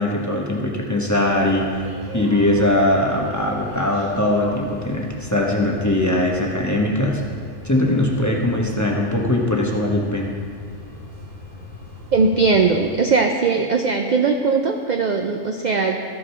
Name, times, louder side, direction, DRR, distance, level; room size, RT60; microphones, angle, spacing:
voice 1, 0.0-1.9 2.1-7.2 7.6-10.3, left 1 dB, 15° left, -2 dB, 0.9 m, -20 dB
sound 1, 1.1-12.9, left 1 dB, 80° right, 2.3 m, -38 dB
voice 2, 12.1-16.0, right 4 dB, 55° right, 3 dB, 0.5 m, -19 dB
13.0 x 5.0 x 5.6 m, 2.1 s
omnidirectional pair, 1.3 m